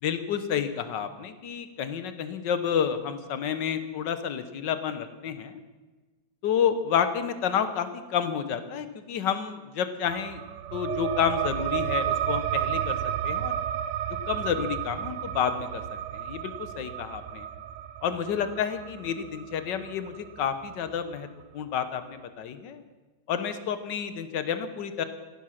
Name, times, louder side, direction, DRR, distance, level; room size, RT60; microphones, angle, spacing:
voice 1, 0.0-5.6 6.4-10.4 10.7-13.0 13.2-13.5 14.3-15.8 16.1-17.5 18.0-21.3 21.5-22.8 23.3-25.0, left 8 dB, 85° left, 11 dB, 1.6 m, -30 dB
sound 1, 10.0-21.2, right 10 dB, 85° right, 1.3 m, -32 dB
14.5 x 11.5 x 5.8 m, 1.2 s
omnidirectional pair, 1.9 m